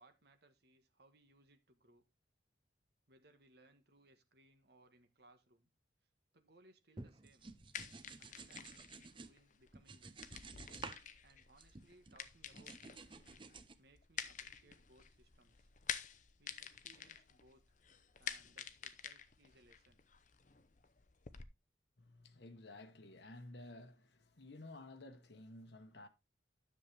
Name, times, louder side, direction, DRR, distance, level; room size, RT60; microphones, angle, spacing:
voice 1, 0.0-2.0 3.1-5.7 6.3-7.5 8.2-10.3 11.2-13.2 13.8-15.7 16.4-17.6 18.2-20.0, right 2 dB, 55° right, 1.4 m, -67 dB
sound 1, 7.0-9.3 9.7-11.0 11.3-12.2 12.5-13.7, right 3 dB, 25° right, 0.6 m, -52 dB
sound 2, 7.4-21.4, left 8 dB, 40° left, 0.7 m, -49 dB
voice 2, 22.0-26.1, left 2 dB, 60° left, 1.1 m, -54 dB
10.0 x 7.2 x 3.4 m
head